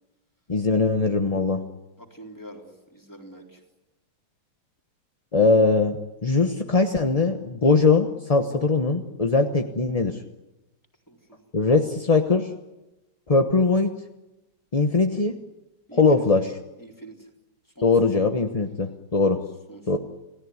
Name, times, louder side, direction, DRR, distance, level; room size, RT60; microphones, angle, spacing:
voice 1, 0.5-1.6 5.3-10.2 11.5-12.5 13.3-13.9 14.7-15.4 15.9-16.5 17.8-19.4 19.9-20.0, left 3 dB, 25° left, 6 dB, 0.8 m, -21 dB
voice 2, 2.0-3.6 11.1-11.5 15.9-16.4 16.8-17.3 17.8-18.2 19.7-20.0, right 1 dB, 10° left, 1 dB, 3.7 m, -45 dB
29.0 x 17.5 x 9.6 m, 1.0 s
omnidirectional pair, 2.2 m